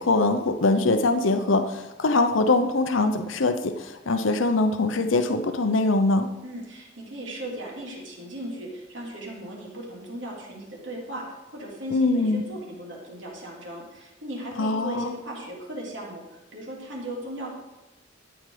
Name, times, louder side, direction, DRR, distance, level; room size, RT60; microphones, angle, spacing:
voice 1, 0.0-6.3 11.9-12.4 14.6-15.1, left 2 dB, 85° left, 8 dB, 0.9 m, -23 dB
voice 2, 6.4-11.3 11.5-17.5, right 1 dB, 70° right, -2 dB, 3.5 m, -37 dB
12.5 x 9.1 x 5.0 m, 1.0 s
head